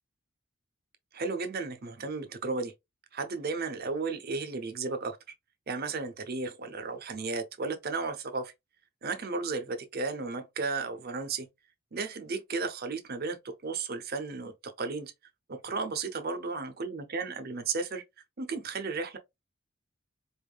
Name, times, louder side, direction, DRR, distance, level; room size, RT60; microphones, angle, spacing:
voice 1, 1.1-2.7 3.1-5.2 5.7-8.5 9.0-11.5 11.9-15.1 15.5-18.0 18.4-19.2, right 4 dB, 50° right, 0.7 m, -34 dB
4.2 x 3.5 x 2.3 m
head